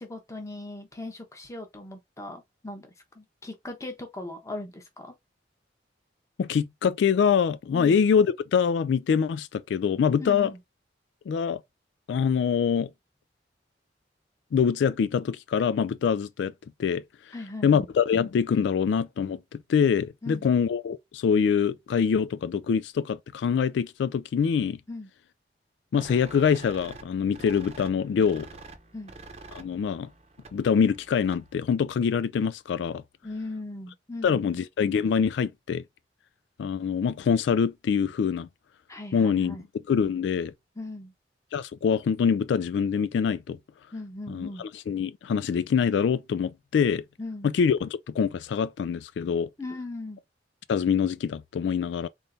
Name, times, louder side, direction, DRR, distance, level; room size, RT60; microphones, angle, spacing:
voice 1, 0.1-5.1 7.7-8.0 10.2-10.6 17.3-17.9 20.2-20.4 24.9-25.1 28.9-29.1 33.2-34.6 38.9-39.6 40.8-41.1 43.9-44.6 47.2-47.5 49.6-50.2, left 2 dB, 15° left, 1.0 m, -38 dB
voice 2, 6.4-10.5 11.3-11.6 12.1-12.9 14.5-16.5 16.8-17.3 17.6-24.8 25.9-28.5 29.5-30.1 30.5-33.0 34.2-35.8 36.6-38.5 39.1-39.6 39.9-40.5 41.5-43.6 44.3-47.0 47.4-49.5 50.7-52.1, left 6 dB, 80° left, 0.3 m, -25 dB
sound 1, 25.9-31.6, right 3 dB, 35° right, 0.7 m, -47 dB
3.9 x 3.6 x 2.7 m
head